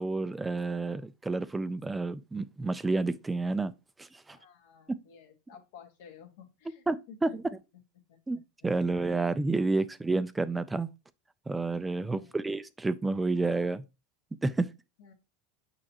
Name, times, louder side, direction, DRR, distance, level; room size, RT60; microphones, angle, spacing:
voice 1, 0.0-3.7 4.0-4.4 6.9-7.6 8.3-10.9 11.5-13.8 14.4-14.7, right 3 dB, 10° right, 0.3 m, -30 dB
voice 2, 4.3-7.4 8.1-8.2 8.6-8.7 12.0-12.4 15.0-15.1, left 7 dB, 75° left, 1.7 m, -53 dB
6.4 x 5.7 x 2.9 m
supercardioid pair, 140°, 0 cm